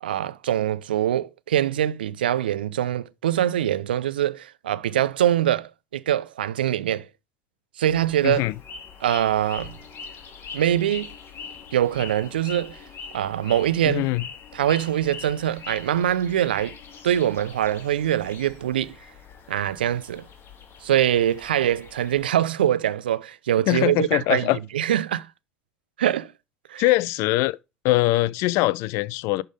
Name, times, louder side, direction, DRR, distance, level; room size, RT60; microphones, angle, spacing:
voice 1, 0.0-7.1 7.8-8.4 9.0-9.7 10.5-11.1 11.7-12.7 13.1-14.1 14.5-16.8 17.0-19.0 19.5-20.2 20.8-25.3 26.0-26.3 26.7-26.8, right 11 dB, 85° right, 0.4 m, -23 dB
sound 1, 7.9-22.2, left 5 dB, 50° left, 1.9 m, -43 dB
voice 2, 8.2-8.6 13.8-14.2 23.7-24.6 26.8-27.6 27.8-29.4, left 19 dB, 65° left, 0.4 m, -22 dB
11.0 x 3.7 x 5.0 m
hypercardioid pair, 60°, 5 cm